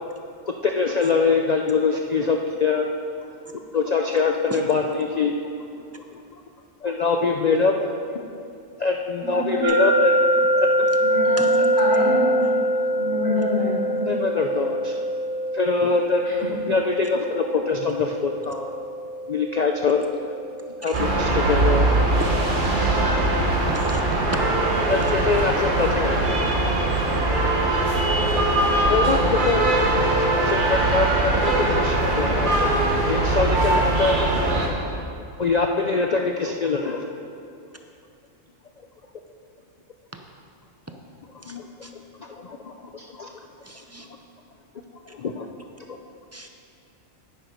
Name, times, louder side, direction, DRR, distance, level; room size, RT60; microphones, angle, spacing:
voice 1, 0.6-2.9 3.7-5.3 6.8-7.7 8.1-8.2 8.8-10.2 10.6-10.9 14.1-15.0 15.5-16.2 16.7-18.7 19.3-20.0 20.8-21.8 24.9-26.4 28.3-28.4 28.9-32.7 33.0-34.5 35.4-37.0 41.5-41.7 42.3-43.3 45.1-45.5, left 4 dB, 55° left, 3 dB, 0.4 m, -24 dB
voice 2, 9.2-9.7 11.0-12.5 12.9-14.0 16.2-16.3, left 1 dB, 75° left, -9 dB, 3.6 m, -27 dB
sound 1, 9.6-22.5, right 1 dB, 85° right, 2.0 m, -24 dB
sound 2, 20.9-34.7, right 2 dB, 40° right, 1.4 m, -21 dB
voice 3, 23.7-24.0 40.1-40.2 41.5-41.9 43.7-44.1 46.3-46.5, right 2 dB, 25° right, 4 dB, 0.3 m, -35 dB
9.2 x 9.1 x 5.2 m, 2.5 s
omnidirectional pair, 1.3 m